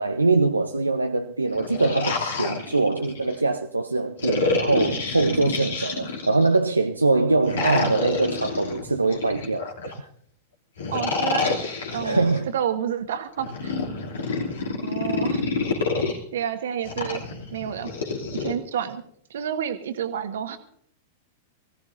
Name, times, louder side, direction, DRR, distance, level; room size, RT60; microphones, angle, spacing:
voice 1, 0.0-10.1 12.0-12.5, right 3 dB, 85° right, 0.7 m, -23 dB
sound 1, 1.4-3.4 4.2-6.6 7.4-10.0 10.8-12.4 13.4-16.2 16.8-18.5, left 4 dB, 65° left, 3.0 m, -28 dB
voice 2, 10.9-12.3 12.5-13.7 14.8-15.4 16.3-17.2 17.5-17.9 18.4-19.0 19.3-20.6, right 9 dB, 60° right, 1.5 m, -29 dB
24.0 x 16.5 x 2.7 m
figure-of-eight pair, 95°, 0 cm